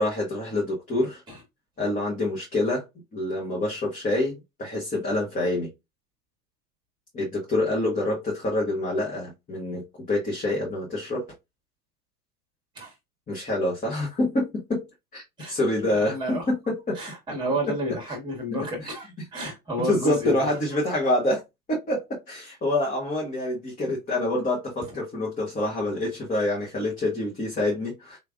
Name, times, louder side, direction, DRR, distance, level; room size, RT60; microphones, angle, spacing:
voice 1, 0.0-1.2 1.8-2.9 3.1-5.7 7.1-11.3 13.3-14.9 15.1-17.0 17.7-17.8 18.6-18.9 19.8-21.4 21.7-28.2, left 1 dB, 15° left, 1.3 m, -27 dB
voice 2, 15.9-16.4 16.9-20.5, equal, 10° right, 1.6 m, -31 dB
3.8 x 3.1 x 2.4 m
figure-of-eight pair, 85°, 47 cm